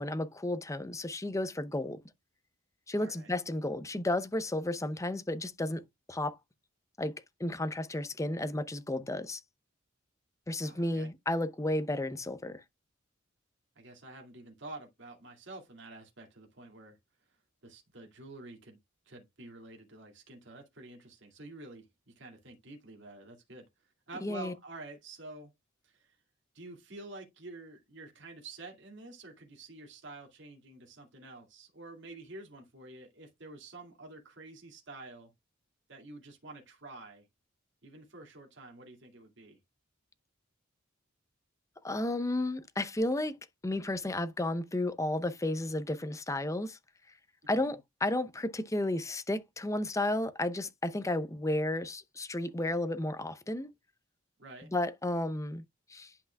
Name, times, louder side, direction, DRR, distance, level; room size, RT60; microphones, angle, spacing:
voice 1, 0.0-2.0 2.9-5.8 6.1-6.4 7.0-9.4 10.5-12.6 24.2-24.5 41.8-43.4 43.6-46.8 47.5-53.7 54.7-55.6 55.9-56.1, left 1 dB, 15° left, 0.7 m, -33 dB
voice 2, 3.0-3.3 10.6-11.1 13.8-17.0 17.6-18.8 19.1-23.7 24.1-25.5 25.8-26.2 26.5-35.3 35.9-37.3 37.8-39.6 47.6-47.8 54.4-54.7, right 2 dB, 65° right, 2.3 m, -49 dB
10.5 x 5.7 x 2.3 m
head